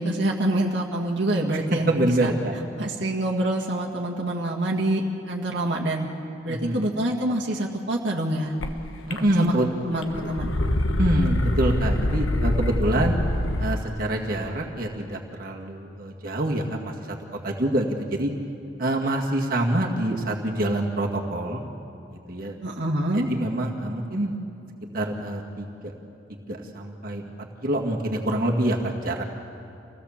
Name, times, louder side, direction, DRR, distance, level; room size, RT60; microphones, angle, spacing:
voice 1, 0.0-2.3 2.8-6.1 6.4-8.5 9.1-9.5 9.9-10.5 22.6-23.3, right 1 dB, 65° right, -2 dB, 1.8 m, -26 dB
voice 2, 1.9-2.6 6.5-6.8 9.1-9.7 11.0-13.2 13.6-17.2 17.4-18.3 18.8-21.7 22.1-22.5 23.1-24.4 24.9-25.9 26.5-27.3 27.6-29.2, right 1 dB, 50° right, -1 dB, 2.0 m, -26 dB
sound 1, 8.6-8.7 9.1-9.7 10.0-13.9, left 1 dB, 85° left, 1.2 m, -25 dB
26.5 x 17.0 x 7.3 m, 2.6 s
head